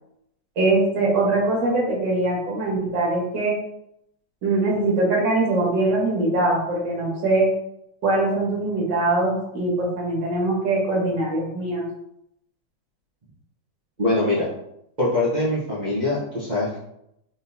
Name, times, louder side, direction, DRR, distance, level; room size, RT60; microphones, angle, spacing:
voice 1, 0.6-3.5 4.4-7.5 8.0-11.9, right 2 dB, 70° right, -3 dB, 2.0 m, -22 dB
voice 2, 14.0-14.5 15.0-16.8, left 2 dB, 30° right, -9 dB, 0.9 m, -23 dB
4.2 x 3.7 x 2.7 m, 0.79 s
omnidirectional pair, 2.0 m